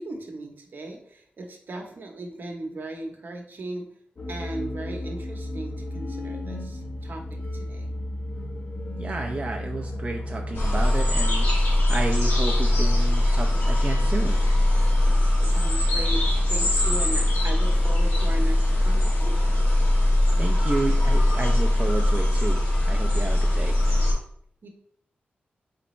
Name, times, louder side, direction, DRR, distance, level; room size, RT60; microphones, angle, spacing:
voice 1, 0.0-3.9 4.3-7.9 15.4-16.2 16.5-19.6 24.6-24.7, right 2 dB, 60° right, 2 dB, 0.9 m, -37 dB
sound 1, 4.2-10.9, left 1 dB, 40° left, 0.6 m, -34 dB
voice 2, 9.0-11.5 11.9-14.4 20.4-23.8, right 3 dB, 35° right, 3 dB, 0.4 m, -31 dB
sound 2, 10.5-24.1, left 1 dB, 90° left, 1.3 m, -21 dB
4.0 x 3.3 x 3.1 m, 0.66 s
cardioid pair, 60°, 4 cm